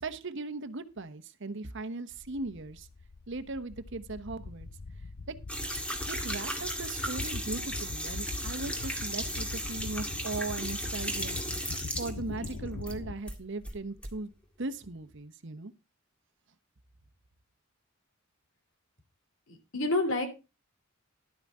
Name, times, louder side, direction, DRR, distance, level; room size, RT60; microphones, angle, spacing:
voice 1, 0.0-2.9 3.3-4.7 5.3-5.4 6.0-11.4 12.0-14.3 14.6-15.7, right 3 dB, 60° right, 11 dB, 1.0 m, -38 dB
sound 1, 2.1-13.1, left 3 dB, 85° left, 0.8 m, -42 dB
sound 2, 5.5-13.0 13.3-14.1, equal, 5° left, 2.0 m, -36 dB
voice 2, 19.5-20.3, left 2 dB, 65° left, 6 dB, 3.0 m, -29 dB
12.0 x 9.0 x 3.7 m, 0.29 s
head